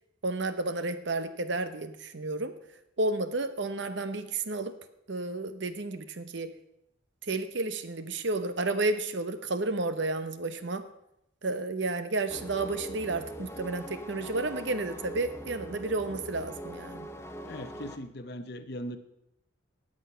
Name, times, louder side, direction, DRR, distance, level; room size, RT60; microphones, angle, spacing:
voice 1, 0.2-2.5 3.0-4.7 5.1-6.5 7.3-10.8 11.4-17.1, right 2 dB, 60° right, 11 dB, 0.9 m, -31 dB
sound 1, 12.3-18.0, equal, 15° left, 0.6 m, -42 dB
voice 2, 17.4-19.0, equal, 50° left, 10 dB, 0.8 m, -39 dB
18.0 x 6.3 x 5.6 m, 0.82 s
head